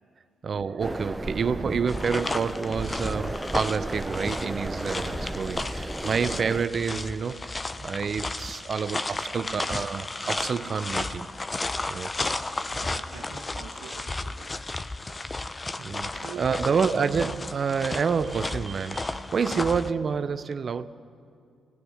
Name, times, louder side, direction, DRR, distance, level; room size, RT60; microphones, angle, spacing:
voice 1, 0.4-11.3 11.9-12.1 12.7-12.8 15.3-15.4 15.8-20.9, right 6 dB, 55° right, 0.9 m, -28 dB
sound 1, 0.8-6.7, right 1 dB, 15° right, 0.9 m, -34 dB
sound 2, 1.9-19.9, left 2 dB, 30° left, 0.9 m, -33 dB
voice 2, 12.8-14.6 16.2-16.8 19.5-19.6, right 7 dB, 85° right, 1.5 m, -45 dB
29.5 x 18.5 x 6.5 m
hypercardioid pair, 50°, 0 cm